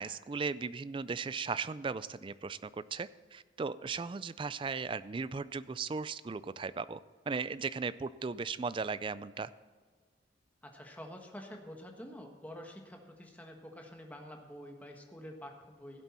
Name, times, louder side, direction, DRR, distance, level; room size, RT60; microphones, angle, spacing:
voice 1, 0.0-7.0 7.3-9.5, right 4 dB, 25° right, 16 dB, 0.3 m, -37 dB
voice 2, 10.6-16.0, equal, 10° left, 2 dB, 1.4 m, -48 dB
16.5 x 8.1 x 4.3 m, 1.6 s
head